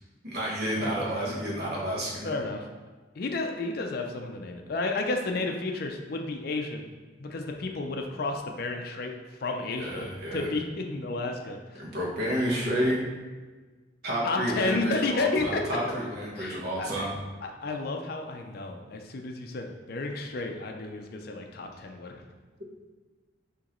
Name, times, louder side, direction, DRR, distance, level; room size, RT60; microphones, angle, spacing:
voice 1, 0.2-2.3 9.8-10.5 11.8-13.0 14.0-17.2, equal, 50° right, -4 dB, 1.1 m, -30 dB
voice 2, 2.2-2.7 3.2-6.8 7.2-9.1 9.4-11.8 14.2-15.6 16.4-17.1 17.4-22.2, left 3 dB, 50° left, 3 dB, 0.4 m, -32 dB
6.2 x 2.9 x 3.0 m, 1.3 s
head